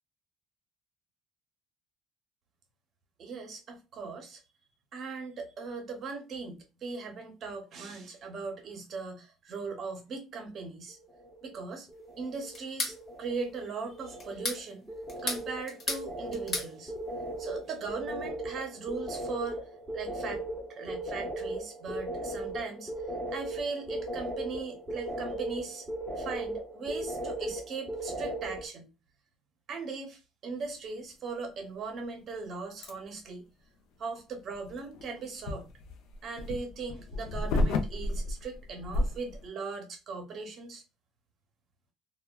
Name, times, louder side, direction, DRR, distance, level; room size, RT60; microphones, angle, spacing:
voice 1, 3.2-4.4 4.9-11.0 11.4-11.9 12.2-14.9 15.2-16.9 17.4-20.4 20.7-22.9 23.3-25.9 26.2-28.9 29.7-33.4 34.0-35.7 36.2-40.8, right 4 dB, 35° right, 0.7 m, -39 dB
sound 1, 11.0-11.6 11.9-12.6 12.9-28.7, right 1 dB, ahead, 0.8 m, -38 dB
sound 2, 12.5-13.0 14.2-14.6 15.1-16.1 16.3-16.7, left 2 dB, 30° left, 1.0 m, -33 dB
sound 3, 32.8-32.9 34.5-39.5, left 2 dB, 85° left, 0.5 m, -32 dB
3.3 x 2.2 x 2.2 m
cardioid pair, 170°, 0 cm